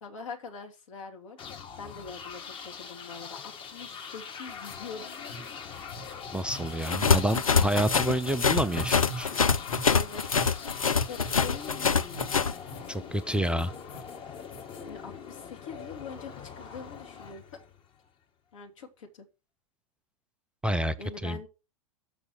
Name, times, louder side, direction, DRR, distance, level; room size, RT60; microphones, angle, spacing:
voice 1, 0.0-5.0 9.3-9.4 9.9-10.5 10.8-11.9 14.8-17.4 18.5-19.3 21.0-21.5, left 5 dB, 65° left, 2.9 m, -43 dB
sound 1, 1.4-18.1, left 6 dB, 30° left, 1.4 m, -43 dB
sound 2, 4.6-14.9, right 1 dB, 50° left, 1.8 m, -44 dB
voice 2, 6.3-9.3 12.9-13.7 20.6-20.9 21.2-21.4, right 1 dB, 5° right, 0.4 m, -28 dB
sound 3, 6.8-12.5, left 5 dB, 85° left, 0.5 m, -25 dB
7.0 x 5.6 x 6.5 m
figure-of-eight pair, 95°, 17 cm